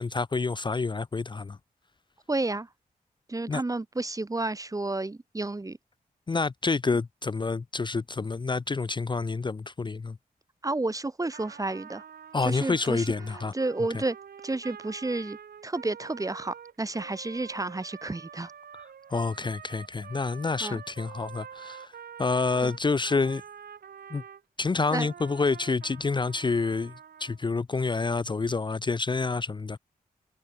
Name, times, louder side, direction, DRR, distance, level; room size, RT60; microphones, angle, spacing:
voice 1, 0.0-1.6 3.5-3.6 6.3-10.2 12.3-13.5 19.1-21.9 22.2-23.4 24.1-24.2 24.6-26.9 27.2-29.8, left 4 dB, 30° left, 0.5 m, -28 dB
voice 2, 2.3-2.7 3.3-5.8 10.6-12.0 12.4-14.2 14.4-15.4 15.6-18.5 20.6-20.8 22.6-22.7 24.9-25.1, right 2 dB, 20° right, 0.9 m, -31 dB
Trumpet, 11.3-24.4 24.9-27.4, right 8 dB, 85° right, 5.1 m, -46 dB
cardioid pair, 50°, 16 cm